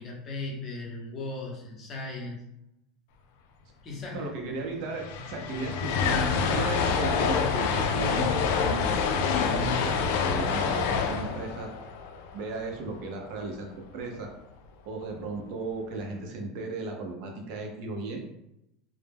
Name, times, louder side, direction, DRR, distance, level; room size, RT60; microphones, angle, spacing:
voice 1, 0.0-2.4 3.8-4.3, left 2 dB, 35° left, -1 dB, 0.7 m, -37 dB
voice 2, 4.1-8.3 8.6-8.9 9.5-11.7 12.3-14.3 14.9-18.2, right 3 dB, 65° right, 2 dB, 0.6 m, -35 dB
sound 1, 4.5-4.6 4.7-13.0, left 5 dB, 75° left, 0.3 m, -27 dB
2.2 x 2.0 x 3.3 m, 0.84 s
supercardioid pair, 125°, 0 cm